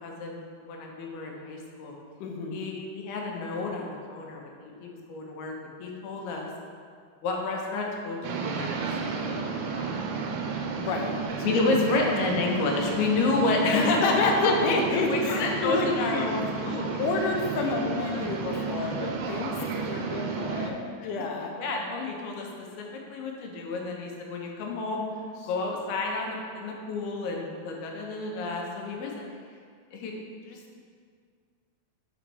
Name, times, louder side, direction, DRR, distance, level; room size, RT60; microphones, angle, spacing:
voice 1, 0.0-2.0 2.5-6.5 7.2-8.2 8.6-8.7 9.0-9.9 10.2-10.5 11.4-14.5 15.1-17.0 17.7-18.2 18.5-19.0 21.6-22.5 22.8-25.0 25.5-29.3 29.9-30.1 30.5-30.6, left 3 dB, 90° left, 0 dB, 2.8 m, -30 dB
voice 2, 2.2-2.6 10.7-11.6 12.0-12.1 13.7-16.3 17.0-21.6, left 3 dB, 75° left, 1 dB, 2.0 m, -29 dB
sound 1, 8.2-20.7, right 5 dB, 90° right, 2.6 m, -32 dB
6.5 x 4.0 x 6.1 m, 2.1 s
omnidirectional pair, 4.3 m